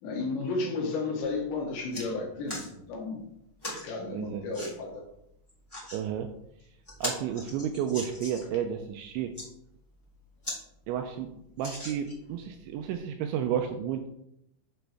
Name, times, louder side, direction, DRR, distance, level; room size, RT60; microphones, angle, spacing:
voice 1, 0.0-3.2 3.7-5.0, left 3 dB, 70° left, 0 dB, 3.6 m, -33 dB
sound 1, 1.2-1.3 1.7-2.0 2.5-2.7 3.6-3.8 4.5-4.7 5.5-6.0 6.5-6.6 6.9-8.5 9.1-9.5 10.0-10.1 10.4-10.6 10.9-11.0 11.6-12.3 12.9-13.0, left 1 dB, 5° left, 2.5 m, -38 dB
voice 2, 4.1-4.4 5.9-6.3 7.0-9.4 10.9-11.3 11.6-14.1, right 9 dB, 85° right, 6 dB, 2.7 m, -32 dB
9.1 x 7.8 x 3.5 m, 0.77 s
omnidirectional pair, 5.8 m